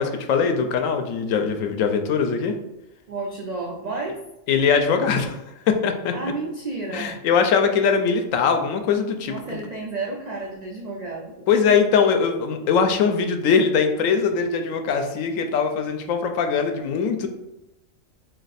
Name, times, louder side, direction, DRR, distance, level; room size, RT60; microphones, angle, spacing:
voice 1, 0.0-2.5 4.5-5.4 5.7-6.1 6.9-9.6 11.5-17.3, left 6 dB, 80° left, 6 dB, 0.9 m, -21 dB
voice 2, 3.1-4.2 6.1-7.2 9.2-11.5, right 3 dB, 90° right, -1 dB, 0.3 m, -31 dB
3.2 x 2.8 x 4.0 m, 0.92 s
omnidirectional pair, 1.4 m